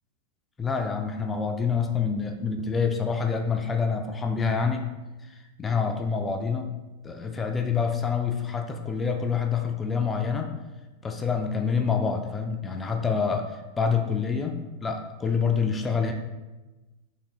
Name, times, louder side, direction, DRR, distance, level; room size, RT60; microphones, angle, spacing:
voice 1, 0.6-4.9 5.6-6.7 7.0-10.5 11.0-16.1, left 5 dB, 15° left, 3 dB, 0.3 m, -27 dB
3.9 x 2.8 x 2.9 m, 1.1 s
figure-of-eight pair, 90°, 0 cm